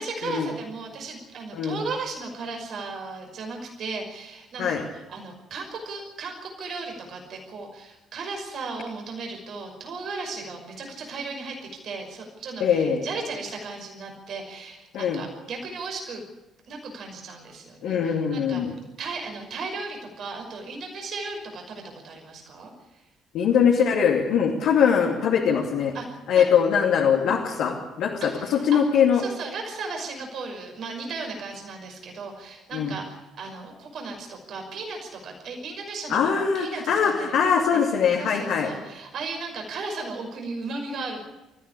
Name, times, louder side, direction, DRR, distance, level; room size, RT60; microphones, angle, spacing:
voice 1, 0.0-4.8 5.1-11.6 11.8-16.2 16.7-22.7 25.9-26.1 26.3-26.5 27.2-27.3 28.2-28.8 29.1-37.8 38.1-41.2, right 3 dB, 50° right, 3 dB, 5.8 m, -36 dB
voice 2, 12.6-13.0 14.9-15.2 17.8-18.7 23.3-25.9 26.3-29.2 32.7-33.0 36.1-38.7, left 7 dB, 55° left, -2 dB, 2.8 m, -22 dB
28.0 x 15.0 x 8.6 m, 1.0 s
figure-of-eight pair, 50°, 0 cm